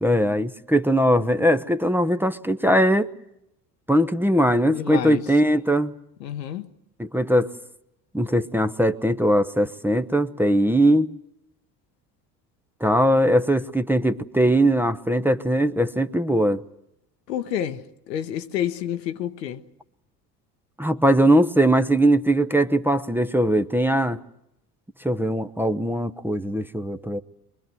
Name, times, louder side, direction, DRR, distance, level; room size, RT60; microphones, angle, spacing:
voice 1, 0.0-3.1 3.9-5.9 7.0-7.5 8.1-11.1 12.8-16.6 20.8-24.2 25.0-27.2, right 1 dB, 5° right, 0.8 m, -20 dB
voice 2, 4.7-5.2 6.2-6.7 17.3-19.6, left 10 dB, 80° left, 1.1 m, -29 dB
23.5 x 22.0 x 7.7 m
hypercardioid pair, 65°, 49 cm